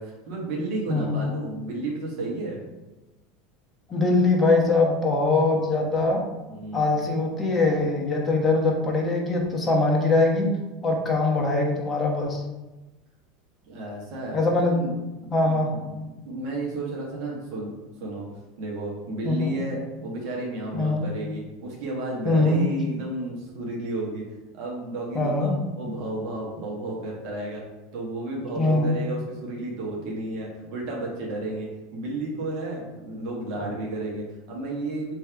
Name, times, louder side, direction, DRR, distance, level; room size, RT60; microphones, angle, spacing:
voice 1, 0.0-2.6 6.5-6.8 13.7-14.4 14.7-17.7 18.0-18.3 18.6-24.2 24.5-27.6 27.9-35.1, right 2 dB, 60° right, -2 dB, 1.3 m, -32 dB
voice 2, 0.9-1.2 3.9-6.2 6.7-10.5 10.8-12.4 14.3-14.7 15.3-15.7 19.2-19.6 20.7-21.0 22.2-22.6 25.1-25.6 28.6-28.9, left 2 dB, 20° left, -1 dB, 1.1 m, -22 dB
3.4 x 3.4 x 4.6 m, 1.1 s
supercardioid pair, 120°, 0 cm